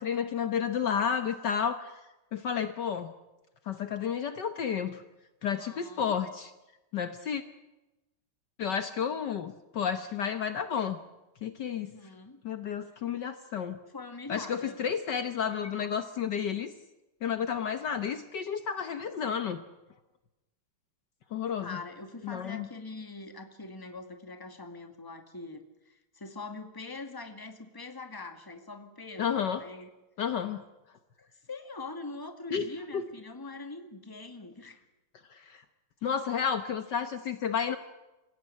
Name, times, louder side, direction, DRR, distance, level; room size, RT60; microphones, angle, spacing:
voice 1, 0.0-1.9 2.3-3.1 3.7-5.0 5.4-6.5 6.9-7.4 8.6-11.0 11.4-11.9 12.4-13.8 14.3-16.7 17.2-19.6 21.3-21.7 22.2-22.7 29.2-29.6 30.2-30.6 32.5-33.0 35.3-35.6 36.0-37.8, left 7 dB, 60° left, 10 dB, 1.6 m, -31 dB
voice 2, 5.4-6.2 11.8-12.4 13.9-14.8 21.6-29.9 31.2-34.8, left 3 dB, 10° left, 7 dB, 1.9 m, -43 dB
26.5 x 16.5 x 9.8 m, 1.0 s
omnidirectional pair, 2.3 m